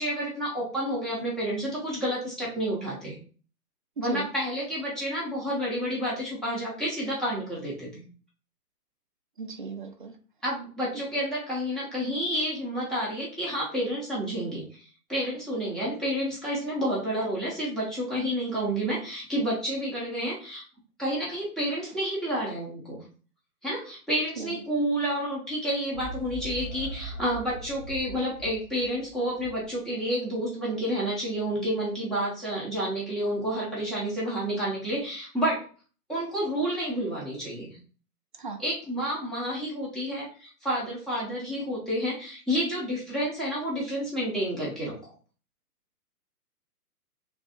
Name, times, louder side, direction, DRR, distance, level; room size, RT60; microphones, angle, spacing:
voice 1, 0.0-3.2 4.0-8.0 10.4-20.6 21.0-23.0 23.6-35.6 36.1-37.8 38.6-44.9, equal, ahead, -7 dB, 0.8 m, -30 dB
voice 2, 4.0-4.3 9.4-10.1 24.4-24.6 38.4-38.6, right 4 dB, 35° right, 6 dB, 0.4 m, -36 dB
sound 1, 25.9-29.8, right 1 dB, 45° left, 1.3 m, -40 dB
3.4 x 3.1 x 4.4 m, 0.39 s
hypercardioid pair, 145°, 47 cm